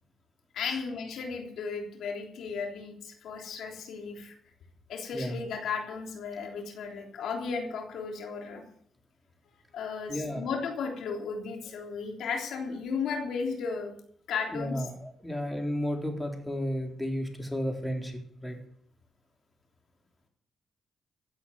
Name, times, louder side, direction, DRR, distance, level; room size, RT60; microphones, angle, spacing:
voice 1, 0.5-4.3 4.9-8.6 9.7-13.9 14.3-14.8, left 5 dB, 80° left, 2 dB, 3.5 m, -35 dB
voice 2, 10.1-10.5 14.5-18.6, equal, 5° left, 2 dB, 4.2 m, -33 dB
15.5 x 8.3 x 8.0 m, 0.63 s
cardioid pair, 70°, 0 cm